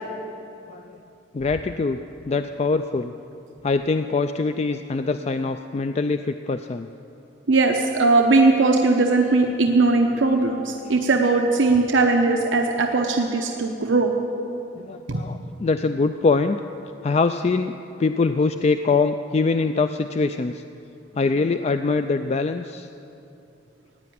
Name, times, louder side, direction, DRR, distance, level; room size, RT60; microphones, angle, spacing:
voice 1, 1.3-2.0 2.3-3.1 3.6-6.9 14.8-16.6 17.0-20.6 21.1-22.9, left 4 dB, 35° left, 8 dB, 0.3 m, -23 dB
voice 2, 7.5-14.1 15.1-15.2, right 3 dB, 90° right, 2 dB, 0.9 m, -19 dB
15.5 x 9.5 x 9.3 m, 2.8 s
head